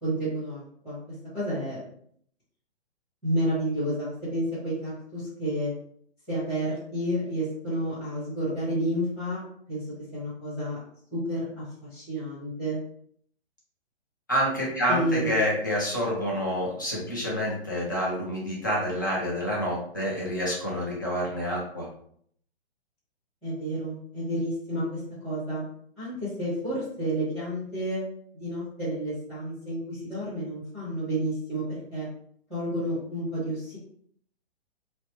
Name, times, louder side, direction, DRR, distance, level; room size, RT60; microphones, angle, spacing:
voice 1, 0.0-1.8 3.2-5.7 6.3-9.4 9.7-10.8 11.1-12.8 14.9-15.3 23.4-25.6 26.0-28.0 28.3-32.1 32.5-33.8, right 1 dB, ahead, -14 dB, 0.9 m, -30 dB
voice 2, 14.3-21.9, equal, 20° left, -5 dB, 0.4 m, -28 dB
3.0 x 2.0 x 2.8 m, 0.64 s
hypercardioid pair, 170°, 33 cm